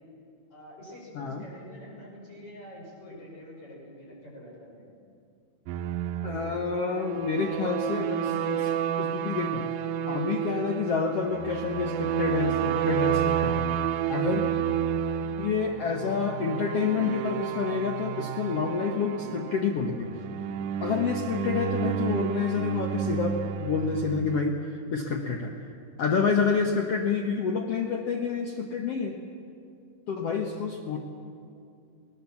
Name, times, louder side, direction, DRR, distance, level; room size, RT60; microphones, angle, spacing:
voice 1, 0.5-4.9, left 1 dB, 35° left, -3 dB, 5.9 m, -46 dB
voice 2, 1.1-1.5 6.2-8.7 9.0-9.7 10.1-13.6 14.1-14.4 15.4-20.1 20.8-25.6 26.0-29.2 30.1-31.0, left 5 dB, 80° left, 3 dB, 1.3 m, -28 dB
sound 1, 5.7-24.4, right 9 dB, 85° right, 1.8 m, -30 dB
19.5 x 19.0 x 7.2 m, 2.5 s
omnidirectional pair, 4.3 m